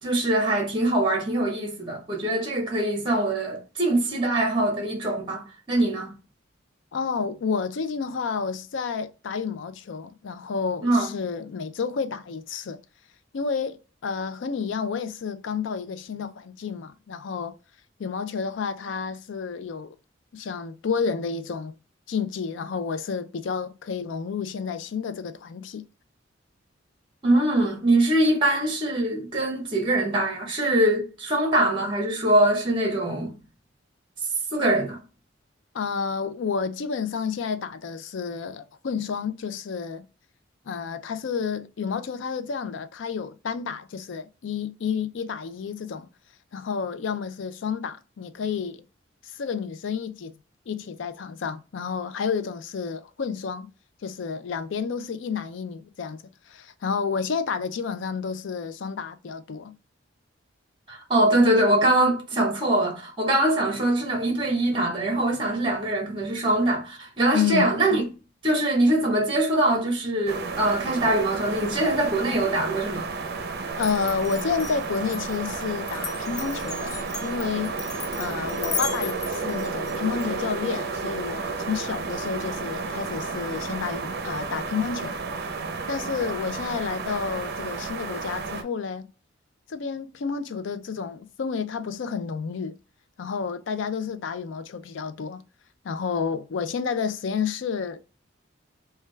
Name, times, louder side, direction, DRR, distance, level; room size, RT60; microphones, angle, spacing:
voice 1, 0.0-6.1 10.8-11.1 27.2-33.3 34.5-35.0 60.9-68.1 68.4-73.1, right 1 dB, 25° right, 0.9 m, -23 dB
voice 2, 6.9-12.8 13.3-17.6 18.0-20.0 20.3-21.7 22.1-25.8 35.7-40.0 40.7-46.1 46.5-48.8 49.2-50.3 50.7-53.7 54.0-59.7 67.3-67.8 73.6-77.7 78.2-85.2 85.9-89.1 89.7-92.8 93.2-95.4 95.8-98.0, left 5 dB, 70° left, 0.4 m, -30 dB
sound 1, 70.3-88.6, right 4 dB, 55° right, 0.5 m, -32 dB
Glass, 73.8-80.3, left 5 dB, 55° left, 0.9 m, -35 dB
3.3 x 2.2 x 3.1 m
head